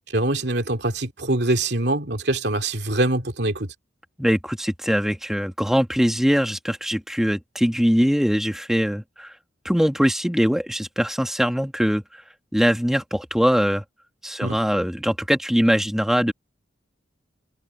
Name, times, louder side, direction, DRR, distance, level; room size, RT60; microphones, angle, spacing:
voice 1, 0.1-3.7 14.4-14.6, right 2 dB, 60° right, 2.7 m, -23 dB
voice 2, 4.2-9.3 9.7-12.0 12.5-13.8 14.2-16.3, equal, ahead, 1.7 m, -22 dB
head